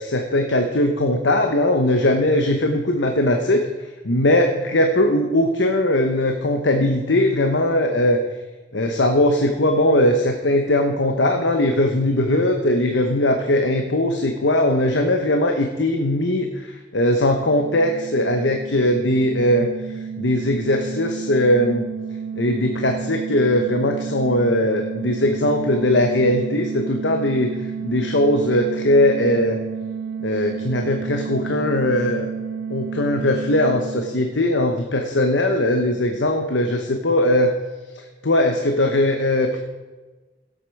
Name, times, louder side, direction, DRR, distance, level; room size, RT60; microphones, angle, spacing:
voice 1, 0.0-3.6 4.0-8.2 8.7-21.9 22.4-27.5 27.8-29.6 30.2-32.3 32.7-37.5 38.2-39.6, left 1 dB, 80° left, 5 dB, 1.0 m, -20 dB
sound 1, 17.3-34.8, right 6 dB, 70° right, 0.5 m, -31 dB
17.0 x 8.3 x 4.7 m, 1.3 s
head